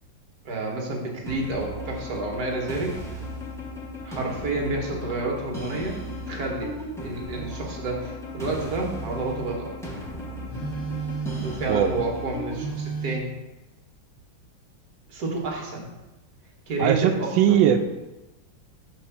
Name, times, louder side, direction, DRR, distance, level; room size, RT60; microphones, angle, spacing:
voice 1, 0.4-3.2 4.0-6.0 6.3-6.7 7.0-9.7 11.4-13.3 15.1-15.9 16.7-17.6, right 2 dB, 55° right, -1 dB, 1.6 m, -30 dB
sound 1, 1.3-12.7, left 1 dB, 5° left, 0.4 m, -36 dB
Telephone, 7.3-7.6 8.5-9.6 10.5-11.7 12.5-13.2, right 5 dB, 40° left, 1.2 m, -34 dB
voice 2, 16.8-17.8, right 10 dB, 75° right, 7 dB, 1.3 m, -20 dB
6.1 x 3.2 x 5.7 m, 1.0 s
omnidirectional pair, 2.2 m